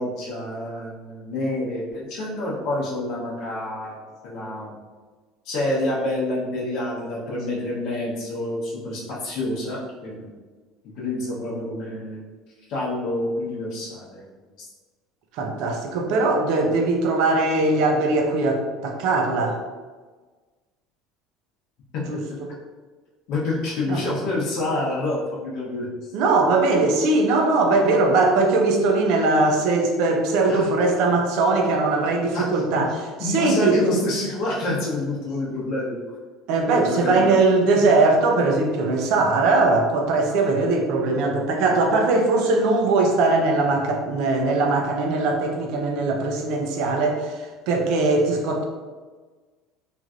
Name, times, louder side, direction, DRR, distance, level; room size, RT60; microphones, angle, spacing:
voice 1, 0.0-4.8 5.4-10.3 11.0-12.2 12.7-14.2 14.6-14.7 21.9-22.0 23.3-25.9 30.5-30.8 32.3-32.9 33.2-36.0 36.7-37.3, left 1 dB, 60° left, -5 dB, 0.8 m, -28 dB
voice 2, 15.3-19.6 22.1-22.5 23.9-24.0 26.1-33.8 36.5-48.6, right 3 dB, 65° right, 2 dB, 0.5 m, -20 dB
3.1 x 2.6 x 2.4 m, 1.4 s
cardioid pair, 140°, 0 cm